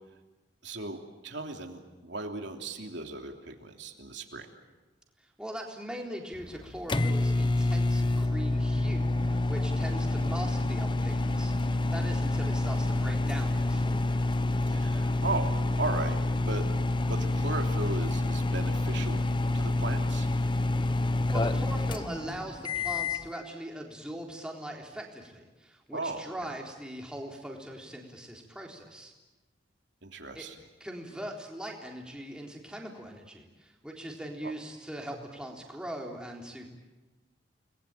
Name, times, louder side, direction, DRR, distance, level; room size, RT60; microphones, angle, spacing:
voice 1, 0.6-4.5 14.6-15.5 15.8-16.6 17.0-19.3 19.5-20.3 25.9-26.5 30.0-30.6 34.4-34.5, right 3 dB, 70° right, 4 dB, 3.2 m, -36 dB
voice 2, 5.2-14.0 21.3-29.1 30.3-30.5 30.8-36.7, right 1 dB, 5° right, 0 dB, 3.7 m, -41 dB
sound 1, 6.3-23.3, left 2 dB, 25° left, 0.9 m, -28 dB
30.0 x 21.0 x 9.1 m, 1.2 s
head